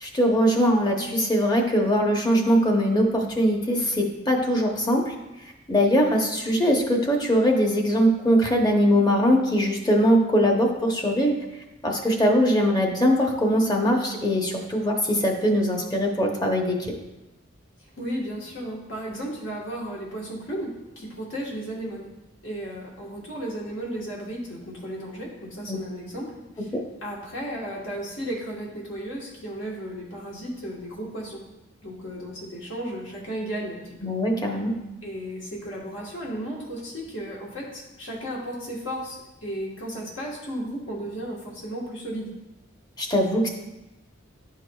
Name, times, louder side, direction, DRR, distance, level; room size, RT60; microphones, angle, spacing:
voice 1, 0.0-5.1 5.7-11.3 11.8-16.8 25.7-25.8 34.0-34.7 43.0-43.5, equal, 20° left, 1 dB, 0.8 m, -21 dB
voice 2, 17.9-22.1 22.4-26.3 26.6-26.7 27.0-31.4 31.8-34.1 34.5-34.6 35.0-42.3, right 1 dB, 75° left, -4 dB, 1.3 m, -34 dB
10.5 x 4.7 x 2.3 m, 0.99 s
head